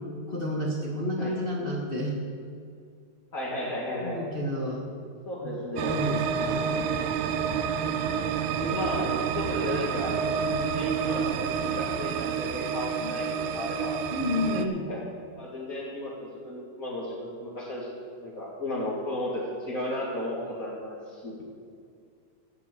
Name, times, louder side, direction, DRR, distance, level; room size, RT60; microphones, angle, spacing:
voice 1, 0.3-2.1 4.0-4.8 5.4-5.5 5.9-6.8 13.0-13.2 14.1-14.9, left 1 dB, 60° left, -4 dB, 0.6 m, -30 dB
voice 2, 3.3-4.2 5.3-6.0 8.5-10.1 10.6-13.9 14.5-15.0 15.4-17.9 18.2-21.4, left 1 dB, 30° left, -7 dB, 1.8 m, -34 dB
sound 1, 5.8-14.7, right 7 dB, 85° right, 2.2 m, -29 dB
13.5 x 7.2 x 8.3 m, 2.3 s
omnidirectional pair, 3.6 m